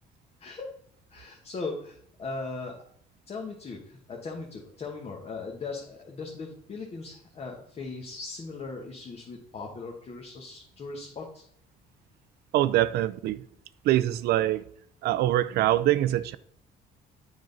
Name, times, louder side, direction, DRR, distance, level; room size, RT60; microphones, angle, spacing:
voice 1, 0.4-0.7 1.1-2.7 3.3-11.4, left 3 dB, 35° left, 1.2 m, -38 dB
voice 2, 12.5-13.4 13.8-14.6 15.0-16.4, right 13 dB, 70° right, 0.5 m, -24 dB
7.7 x 5.5 x 3.9 m
cardioid pair, 110°, 17 cm